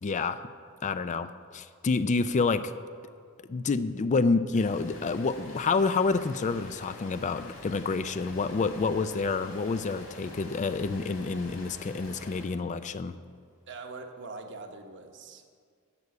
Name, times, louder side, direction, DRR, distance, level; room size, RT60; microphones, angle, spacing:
voice 1, 0.0-0.5 0.8-2.7 3.5-13.1, left 4 dB, 35° left, 12 dB, 0.4 m, -28 dB
Rain, 4.5-12.5, left 1 dB, 65° left, 3.6 m, -47 dB
voice 2, 13.7-15.5, right 3 dB, 60° right, 4 dB, 1.1 m, -43 dB
11.0 x 6.9 x 8.2 m, 2.1 s
head